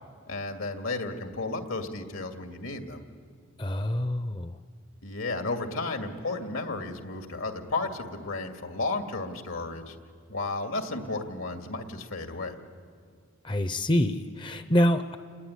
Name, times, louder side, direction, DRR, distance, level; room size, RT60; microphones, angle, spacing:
voice 1, 0.3-3.0 5.0-10.0 10.3-12.5, left 3 dB, 80° left, 4 dB, 2.4 m, -33 dB
voice 2, 3.6-4.5 13.4-15.2, equal, 25° left, 9 dB, 0.6 m, -26 dB
29.5 x 20.0 x 9.9 m, 2.1 s
head